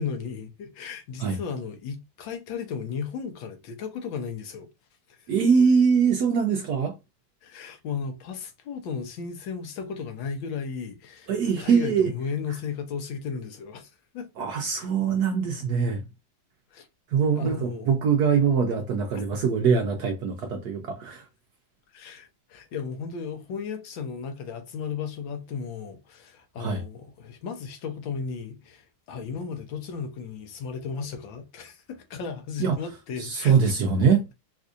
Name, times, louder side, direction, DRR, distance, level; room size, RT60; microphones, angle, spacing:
voice 1, 0.0-4.7 5.1-5.3 7.4-11.3 11.6-14.5 16.7-16.9 17.3-18.0 21.9-33.5, left 6 dB, 70° left, 1.5 m, -35 dB
voice 2, 5.3-7.0 11.3-12.1 14.4-16.0 17.1-21.3 26.6-26.8 32.6-32.7 33.2-34.3, right 6 dB, 70° right, 0.9 m, -23 dB
4.3 x 2.5 x 2.4 m
omnidirectional pair, 2.3 m